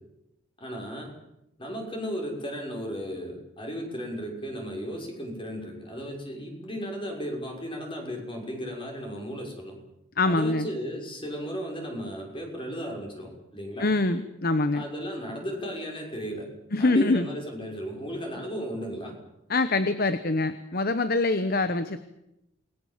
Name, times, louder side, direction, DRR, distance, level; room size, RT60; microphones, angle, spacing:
voice 1, 0.6-1.1 1.6-9.8 10.3-13.9 14.7-16.5 16.8-19.1, equal, 25° left, 1 dB, 5.9 m, -35 dB
voice 2, 10.2-10.7 13.8-14.8 16.7-17.3 19.5-22.0, left 2 dB, 45° left, 11 dB, 1.1 m, -24 dB
28.0 x 20.5 x 7.5 m, 0.87 s
head